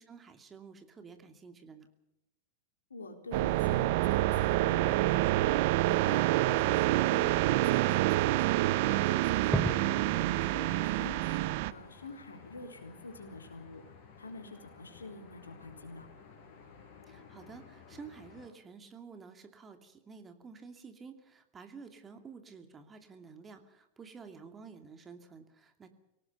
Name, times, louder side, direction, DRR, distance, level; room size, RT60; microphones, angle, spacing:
voice 1, 0.0-1.9 17.1-25.9, right 5 dB, 20° right, 7 dB, 2.6 m, -51 dB
voice 2, 2.9-5.4 5.8-9.6 10.1-13.8 14.2-16.1, left 3 dB, 75° left, 5 dB, 3.9 m, -47 dB
sound 1, 3.3-11.7, right 17 dB, 50° right, 0.9 m, -27 dB
Fireworks, 5.9-11.2, right 1 dB, ahead, 3.5 m, -40 dB
sound 2, 9.1-18.5, left 6 dB, 45° left, 4.9 m, -54 dB
25.0 x 18.0 x 6.8 m, 0.87 s
figure-of-eight pair, 90°, 0 cm